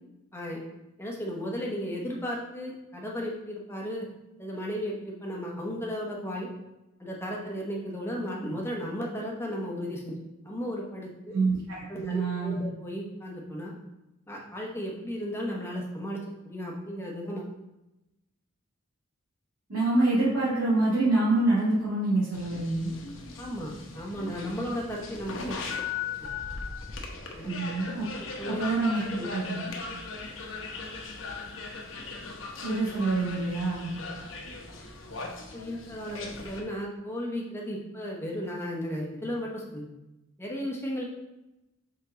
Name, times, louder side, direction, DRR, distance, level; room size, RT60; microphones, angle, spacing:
voice 1, 1.0-4.1 4.4-6.5 7.0-11.3 11.9-13.7 14.3-17.5 23.4-25.6 25.9-26.0 27.3-27.5 28.4-28.6 29.2-29.3 35.5-39.9 40.4-41.0, equal, 10° left, -2 dB, 1.0 m, -35 dB
voice 2, 11.3-12.6 19.7-22.9 27.4-28.0 28.5-29.6 32.6-33.9, right 2 dB, 75° right, -10 dB, 2.2 m, -26 dB
sound 1, 22.3-36.6, left 4 dB, 65° left, 1.0 m, -39 dB
5.3 x 5.2 x 3.8 m, 0.95 s
head